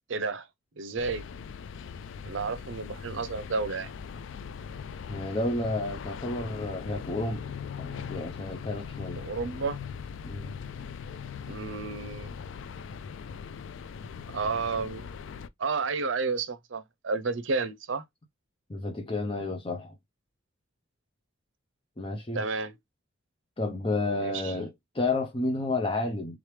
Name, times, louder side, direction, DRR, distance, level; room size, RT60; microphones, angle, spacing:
voice 1, 0.1-0.5 0.8-1.2 2.2-3.9 9.2-9.8 11.5-12.3 14.3-15.1 15.6-18.0 22.3-22.7 24.2-24.5, right 4 dB, 80° right, 0.6 m, -31 dB
sound 1, 1.0-15.5, left 6 dB, 75° left, 0.3 m, -40 dB
voice 2, 5.1-7.5 7.8-9.2 10.2-10.5 18.7-19.9 22.0-22.4 23.6-26.4, left 2 dB, 25° left, 0.6 m, -31 dB
3.8 x 3.2 x 3.2 m
head